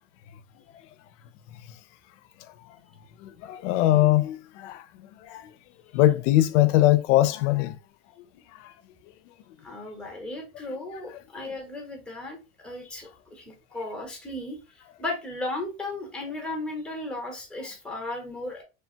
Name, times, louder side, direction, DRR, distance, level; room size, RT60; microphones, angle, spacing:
voice 1, 3.2-5.5 5.9-7.8 8.6-8.7, left 15 dB, 80° left, 0.5 m, -22 dB
voice 2, 9.6-18.6, left 2 dB, 5° left, 0.7 m, -35 dB
3.3 x 2.2 x 2.7 m
supercardioid pair, 150°, 36 cm